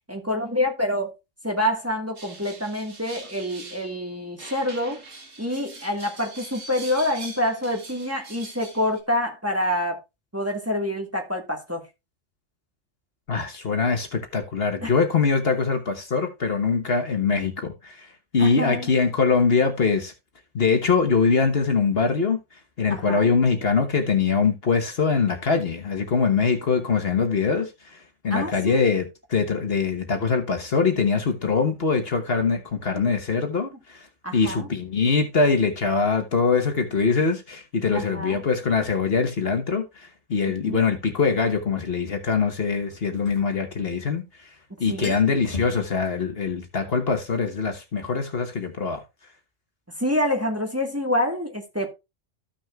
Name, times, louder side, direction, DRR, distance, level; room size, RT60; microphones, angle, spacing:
voice 1, 0.1-1.1 1.4-5.0 5.4-10.0 10.3-11.8 14.8-14.9 18.4-18.9 22.9-23.3 28.3-28.9 34.2-34.7 37.9-38.4 40.6-40.8 44.9-45.1 50.0-51.9, left 1 dB, 10° right, 1.5 m, -27 dB
sound 1, 2.2-4.0 4.4-9.0, right 3 dB, 75° right, 2.1 m, -43 dB
voice 2, 13.3-18.1 18.3-20.1 20.5-22.4 22.8-34.1 34.3-44.5 44.8-49.0, left 5 dB, 50° left, 1.3 m, -23 dB
sound 2, 40.5-40.6 42.9-44.2 44.5-44.6 44.8-45.9, left 3 dB, 35° left, 2.1 m, -37 dB
14.5 x 6.2 x 2.3 m
omnidirectional pair, 1.3 m